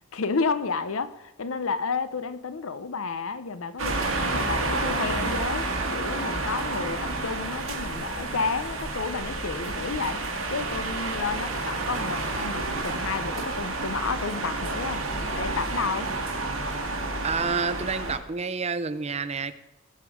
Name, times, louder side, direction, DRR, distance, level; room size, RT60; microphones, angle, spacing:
voice 1, 0.1-10.2 10.5-15.0 15.3-16.1, left 4 dB, 80° left, 0.7 m, -31 dB
sound 1, 3.8-18.2, right 2 dB, 70° right, 2.0 m, -30 dB
voice 2, 17.2-19.5, right 5 dB, 30° right, 0.6 m, -29 dB
20.0 x 6.7 x 5.0 m
head